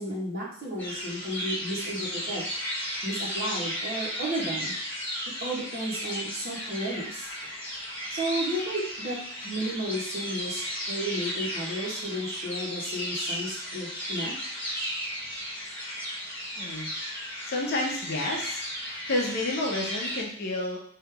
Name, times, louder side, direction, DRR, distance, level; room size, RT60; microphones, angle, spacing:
voice 1, 0.0-2.5 3.0-4.7 5.4-7.3 8.1-9.2 9.4-10.6 10.9-14.3, right 1 dB, 45° right, -6 dB, 1.4 m, -33 dB
sound 1, 0.8-20.2, equal, 10° left, 1.0 m, -34 dB
voice 2, 16.6-16.9 17.5-20.8, left 2 dB, 50° left, -1 dB, 0.7 m, -30 dB
3.3 x 2.9 x 3.5 m, 0.64 s
head